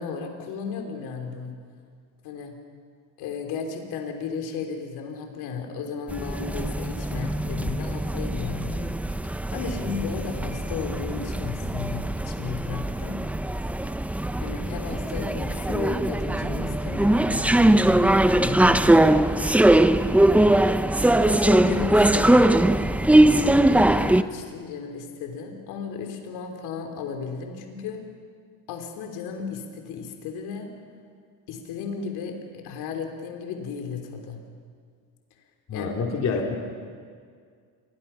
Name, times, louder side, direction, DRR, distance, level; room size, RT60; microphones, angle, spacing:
voice 1, 0.0-1.6 2.2-2.6 3.2-8.9 9.2-13.3 14.4-19.2 21.2-22.5 23.2-28.0 28.7-30.7 31.5-34.4 35.7-35.9, left 6 dB, 80° left, 3 dB, 3.4 m, -34 dB
sound 1, 6.1-24.2, right 1 dB, 5° right, 0.6 m, -21 dB
voice 2, 35.7-36.6, left 4 dB, 45° left, 0 dB, 3.5 m, -27 dB
29.0 x 23.0 x 5.8 m, 2.1 s
cardioid pair, 120°, 38 cm